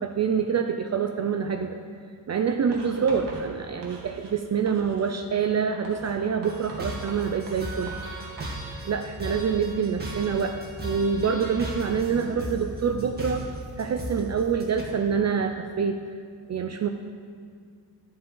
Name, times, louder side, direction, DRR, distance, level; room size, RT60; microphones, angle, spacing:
voice 1, 0.0-1.8 2.3-7.9 8.8-13.5 13.8-16.1 16.5-16.9, right 6 dB, 45° right, 6 dB, 0.4 m, -26 dB
Writing, 2.7-4.4 4.7-5.2 5.8-8.6, right 3 dB, 80° right, 1.5 m, -43 dB
sound 1, 6.4-14.8, right 1 dB, 25° right, 1.5 m, -36 dB
11.5 x 7.7 x 3.8 m, 2.1 s
wide cardioid pair, 140°, 41 cm